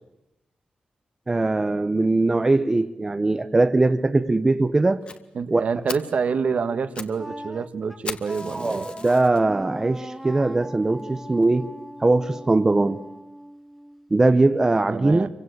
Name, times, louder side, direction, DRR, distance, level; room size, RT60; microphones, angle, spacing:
voice 1, 1.3-5.0 5.5-5.6 8.5-11.7 12.0-13.0 14.1-15.3, right 2 dB, 20° right, 0.9 m, -21 dB
Fire, 5.1-5.2 5.6-5.7 5.9-6.2 6.7-7.2 7.4-7.5 8.0-9.4 10.0-10.1 10.6-10.7 11.0-11.1 11.4-11.5, left 4 dB, 40° left, 1.8 m, -37 dB
voice 2, 5.3-8.9 14.9-15.3, right 5 dB, 55° right, 1.6 m, -27 dB
Wind instrument woodwind instrument, 7.1-14.1, equal, ahead, 1.6 m, -40 dB
28.0 x 24.5 x 8.1 m
wide cardioid pair, 150°, 3 cm